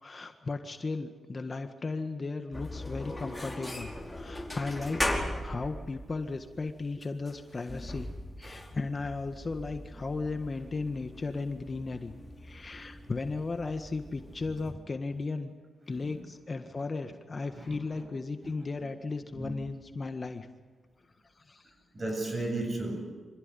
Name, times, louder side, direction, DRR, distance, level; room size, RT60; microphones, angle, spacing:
voice 1, 0.0-5.0 5.4-8.1 8.4-12.1 12.4-15.5 15.9-20.5 21.4-21.6, left 3 dB, 40° left, 7 dB, 1.7 m, -35 dB
sound 1, 2.5-14.7, left 1 dB, 10° left, 4.8 m, -39 dB
voice 2, 15.9-16.3 16.7-17.1 17.5-18.1 18.4-18.9 19.3-19.6 21.9-23.1, right 2 dB, 35° right, 4 dB, 7.8 m, -37 dB
26.0 x 15.5 x 9.9 m, 1.4 s
cardioid pair, 70°, 0 cm